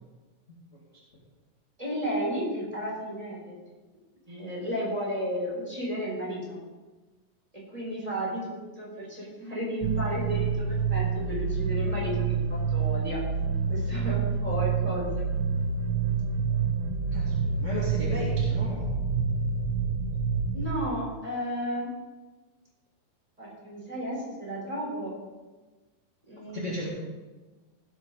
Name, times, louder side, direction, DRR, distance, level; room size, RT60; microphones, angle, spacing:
voice 1, 1.8-3.6 4.3-6.6 7.5-13.2 13.7-15.5 20.5-21.9 23.4-25.1 26.3-26.7, equal, 10° right, -5 dB, 3.3 m, -33 dB
sound 1, 9.8-20.7, right 5 dB, 85° right, 3.3 m, -28 dB
voice 2, 17.1-18.9 26.5-26.9, left 1 dB, 35° left, -5 dB, 1.3 m, -34 dB
16.5 x 7.7 x 3.7 m, 1.3 s
omnidirectional pair, 4.2 m